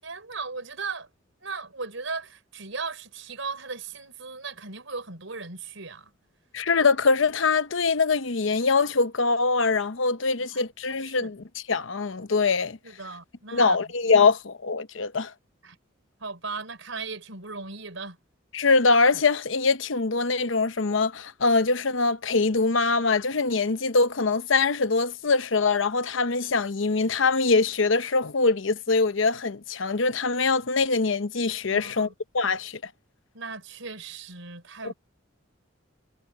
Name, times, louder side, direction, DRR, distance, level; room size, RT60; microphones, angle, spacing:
voice 1, 0.0-1.1 1.4-6.1 10.4-10.7 11.0-11.3 12.8-13.8 15.6-15.8 16.2-18.2 31.7-32.1 33.3-34.9, right 4 dB, 80° right, 4.8 m, -37 dB
voice 2, 6.5-12.8 13.5-15.3 18.5-32.1 32.3-32.8 34.8-34.9, left 4 dB, 75° left, 0.9 m, -23 dB
head